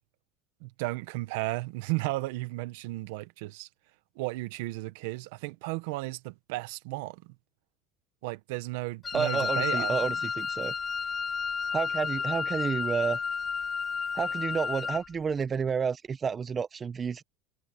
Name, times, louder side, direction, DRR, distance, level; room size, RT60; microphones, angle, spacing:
voice 1, 0.6-3.7 4.2-7.2 8.2-9.9, right 21 dB, 80° right, 1.5 m, -34 dB
Wind instrument woodwind instrument, 9.0-15.1, left 5 dB, 25° left, 0.8 m, -31 dB
voice 2, 9.1-10.7 11.7-13.2 14.1-17.2, right 6 dB, 25° right, 1.1 m, -30 dB
supercardioid pair, 120°, 0 cm